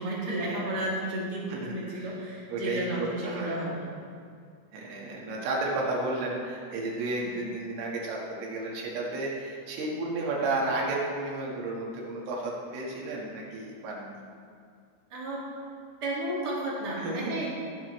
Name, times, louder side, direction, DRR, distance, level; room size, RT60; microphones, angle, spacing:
voice 1, 0.0-3.9 15.1-15.4 16.0-17.5, right 1 dB, 55° right, -6 dB, 1.1 m, -32 dB
voice 2, 1.5-2.2 2.5-3.6 4.7-14.2 17.0-17.3, right 2 dB, 75° right, -3 dB, 4.2 m, -32 dB
19.0 x 7.9 x 3.2 m, 2.2 s
omnidirectional pair, 5.8 m